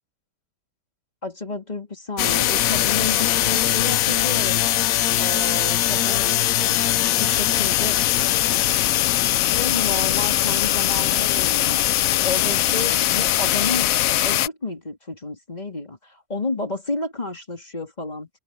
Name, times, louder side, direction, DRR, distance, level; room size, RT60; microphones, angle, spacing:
voice 1, 1.2-4.7 5.2-8.0 9.5-11.8 12.2-13.9 14.2-18.3, left 3 dB, 25° left, 2.9 m, -31 dB
sound 1, 2.2-14.5, left 13 dB, 70° left, 0.9 m, -21 dB
open air
omnidirectional pair, 1.7 m